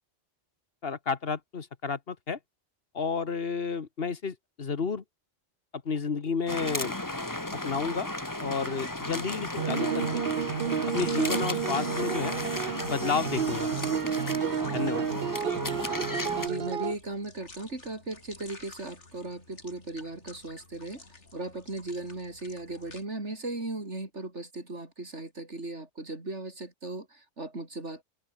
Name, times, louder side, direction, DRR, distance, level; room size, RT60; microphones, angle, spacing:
voice 1, 0.8-2.4 2.9-5.0 5.8-6.9 7.6-8.1 8.4-10.2 10.9-12.4 12.8-13.7 14.7-15.0, left 5 dB, 60° left, 1.6 m, -31 dB
sound 1, 6.5-16.5, left 1 dB, 15° left, 1.9 m, -34 dB
sound 2, 8.6-23.0, left 3 dB, 90° left, 3.9 m, -50 dB
sound 3, 9.6-16.9, right 7 dB, 55° right, 1.1 m, -31 dB
voice 2, 16.3-21.0 21.3-28.0, right 2 dB, 85° right, 5.1 m, -37 dB
open air
omnidirectional pair, 1.2 m